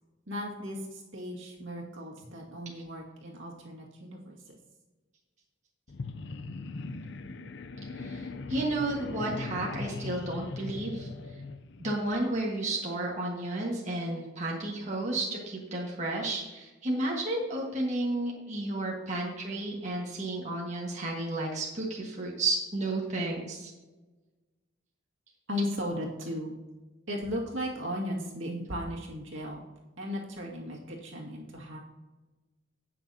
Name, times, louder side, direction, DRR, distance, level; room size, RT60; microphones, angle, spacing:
voice 1, 0.3-4.6 25.5-26.5 27.1-29.6 30.0-31.8, equal, 70° right, -2 dB, 2.1 m, -36 dB
sound 1, 5.9-12.1, left 3 dB, 60° left, 0.5 m, -39 dB
voice 2, 7.9-11.1 11.8-23.7, right 2 dB, 35° right, -3 dB, 1.5 m, -32 dB
17.5 x 6.1 x 2.8 m, 1.2 s
head